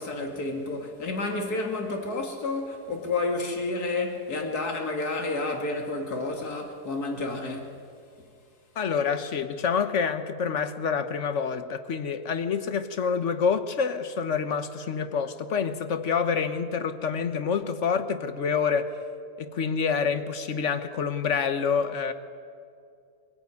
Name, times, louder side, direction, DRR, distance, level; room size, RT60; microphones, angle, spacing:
voice 1, 0.0-7.8, left 2 dB, 70° left, 2.8 m, -30 dB
voice 2, 8.8-18.9 19.4-22.1, left 6 dB, 50° left, 1.4 m, -27 dB
23.5 x 16.5 x 9.6 m
omnidirectional pair, 1.7 m